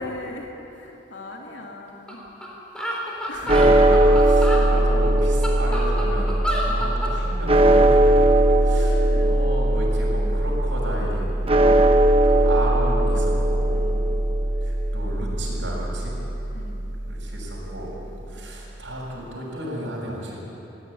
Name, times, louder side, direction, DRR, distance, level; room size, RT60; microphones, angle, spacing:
voice 1, 0.0-2.3 3.3-3.6 4.5-4.9 6.7-6.9 8.7-9.4 11.4-12.2 13.7-14.2 16.5-16.9 18.0-18.4, left 1 dB, 85° left, 0 dB, 3.0 m, -39 dB
sound 1, 2.1-2.2 2.4-2.5 2.8-4.6 5.2-7.1, equal, 5° left, 3.8 m, -29 dB
voice 2, 3.3-6.3 6.6-8.3 8.6-11.6 12.2-13.9 14.6-16.2 17.1-20.4, equal, 90° right, -5 dB, 6.6 m, -33 dB
sound 2, 3.5-17.7, right 1 dB, 30° right, 1.0 m, -19 dB
20.5 x 16.0 x 9.7 m, 3.0 s
head